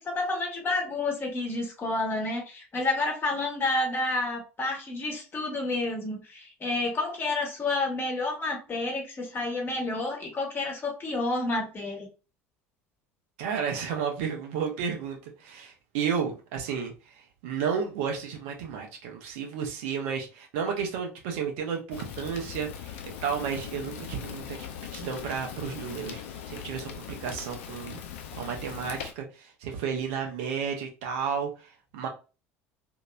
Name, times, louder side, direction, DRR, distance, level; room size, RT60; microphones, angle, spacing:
voice 1, 0.0-12.1, left 2 dB, 30° left, 1.2 m, -30 dB
voice 2, 13.4-16.9 17.4-24.6 24.9-28.0 28.3-32.1, right 6 dB, 65° right, 0.8 m, -32 dB
Fire, 21.9-29.1, left 9 dB, 65° left, 0.5 m, -40 dB
2.9 x 2.8 x 2.3 m
figure-of-eight pair, 65°, 7 cm